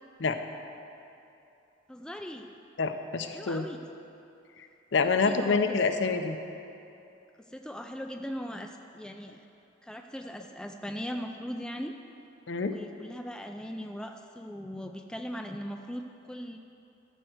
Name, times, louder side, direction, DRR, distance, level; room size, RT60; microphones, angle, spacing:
voice 1, 1.9-2.5 3.3-3.8 5.3-5.6 7.5-9.4 9.8-11.9 12.7-16.6, equal, 5° left, 4 dB, 0.3 m, -39 dB
voice 2, 2.8-3.6 4.9-6.4 12.5-12.7, left 4 dB, 65° left, 7 dB, 0.6 m, -27 dB
13.5 x 4.6 x 7.8 m, 2.8 s
head